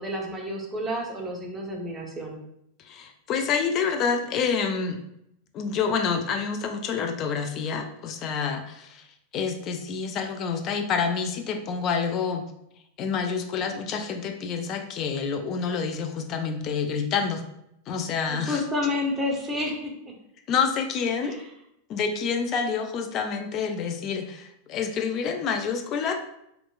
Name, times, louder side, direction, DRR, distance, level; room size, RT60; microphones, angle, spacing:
voice 1, 0.0-2.4 18.3-20.1 21.2-21.4, left 1 dB, 15° right, 0 dB, 0.6 m, -30 dB
voice 2, 2.8-5.0 5.5-9.1 9.3-12.4 13.0-17.5 17.9-18.6 20.5-21.3 21.9-26.1, left 6 dB, 35° left, 5 dB, 0.3 m, -28 dB
3.0 x 2.0 x 2.3 m, 0.77 s
figure-of-eight pair, 90°, 0 cm